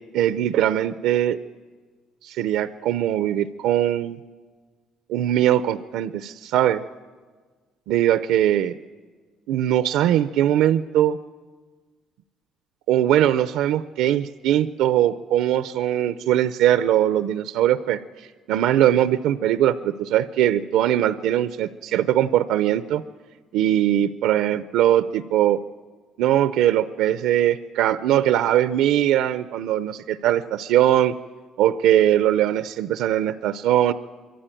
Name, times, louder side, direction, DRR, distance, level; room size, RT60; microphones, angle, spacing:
voice 1, 0.1-1.4 2.2-4.2 5.1-6.8 7.9-8.7 9.5-11.2 12.9-23.0 23.5-25.6 26.2-31.1 31.6-33.9, right 11 dB, 80° right, 13 dB, 0.5 m, -21 dB
24.0 x 14.5 x 9.0 m, 1.4 s
cardioid pair, 175°, 0 cm